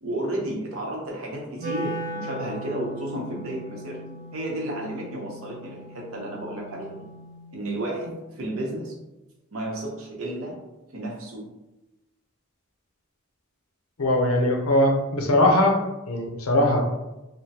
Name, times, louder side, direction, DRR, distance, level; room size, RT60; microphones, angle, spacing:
voice 1, 0.0-7.1 7.5-8.9 9.5-10.6 10.9-11.4, right 1 dB, 80° right, -1 dB, 0.8 m, -32 dB
Wind instrument woodwind instrument, 1.6-7.7, right 1 dB, 35° right, 0.9 m, -38 dB
voice 2, 14.0-15.8 16.1-16.8, left 1 dB, 85° left, 2 dB, 0.6 m, -20 dB
3.5 x 2.1 x 2.8 m, 1.0 s
head